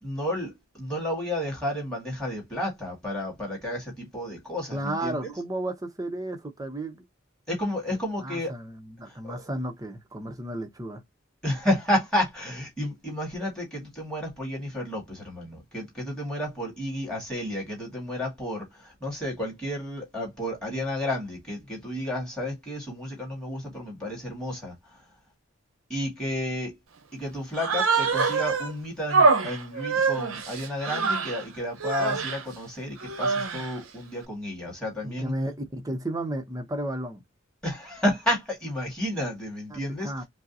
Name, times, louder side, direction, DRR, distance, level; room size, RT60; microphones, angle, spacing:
voice 1, 0.0-5.3 7.5-8.5 9.1-9.5 11.4-25.0 25.9-26.8 27.1-35.3 37.6-40.2, left 1 dB, 5° left, 1.9 m, -31 dB
voice 2, 4.7-7.1 8.2-11.0 35.0-37.2 39.7-40.2, right 1 dB, 15° right, 0.6 m, -33 dB
Human voice, 27.5-28.7 29.1-31.4 31.8-32.4 33.0-33.8, right 4 dB, 85° right, 0.7 m, -25 dB
5.0 x 2.0 x 2.7 m
head